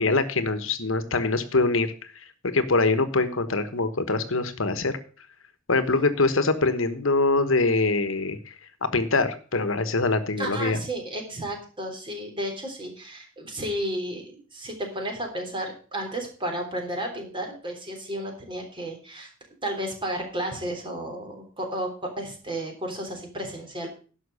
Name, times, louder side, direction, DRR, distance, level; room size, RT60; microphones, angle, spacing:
voice 1, 0.0-1.9 2.5-5.0 5.7-8.5 8.8-10.8, left 3 dB, 85° left, 11 dB, 1.3 m, -23 dB
voice 2, 10.4-19.3 19.6-23.9, right 1 dB, 25° right, 2 dB, 3.6 m, -33 dB
11.0 x 6.2 x 6.6 m, 0.38 s
head